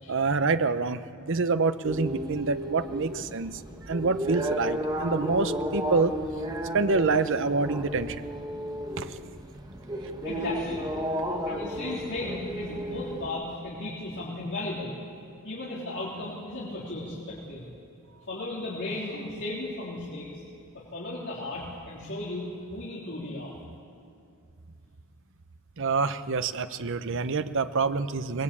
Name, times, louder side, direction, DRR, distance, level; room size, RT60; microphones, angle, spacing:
voice 1, 0.1-3.6 3.9-6.2 6.7-8.2 9.0-9.2 25.8-28.4, right 4 dB, 60° right, 11 dB, 0.8 m, -27 dB
sound 1, 1.8-13.3, equal, 20° right, 1.4 m, -33 dB
voice 2, 10.2-10.8 11.4-15.0 15.4-17.7 18.3-20.4 20.7-23.5, left 2 dB, 55° left, -6 dB, 3.7 m, -35 dB
23.0 x 20.0 x 8.6 m, 2.4 s
head